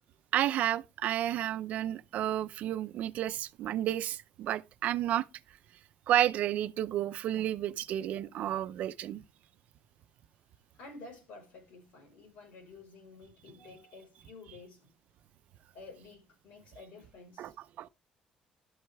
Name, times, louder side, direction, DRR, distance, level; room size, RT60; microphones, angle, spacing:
voice 1, 0.3-5.2 6.1-9.2 17.4-17.5 17.8-17.9, right 12 dB, 70° right, 0.6 m, -31 dB
voice 2, 10.7-14.9 15.7-17.5, left 3 dB, 80° left, 5.1 m, -51 dB
12.0 x 7.8 x 3.5 m
cardioid pair, 115°, 3 cm